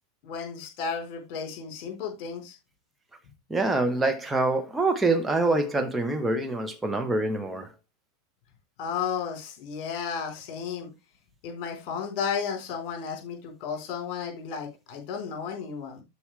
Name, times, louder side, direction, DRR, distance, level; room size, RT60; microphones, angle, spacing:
voice 1, 0.2-2.6 8.8-10.9 11.4-16.0, left 6 dB, 40° left, 4.3 m, -33 dB
voice 2, 3.5-7.7, right 2 dB, 10° right, 1.4 m, -25 dB
12.5 x 4.9 x 3.4 m
figure-of-eight pair, 90°, 0 cm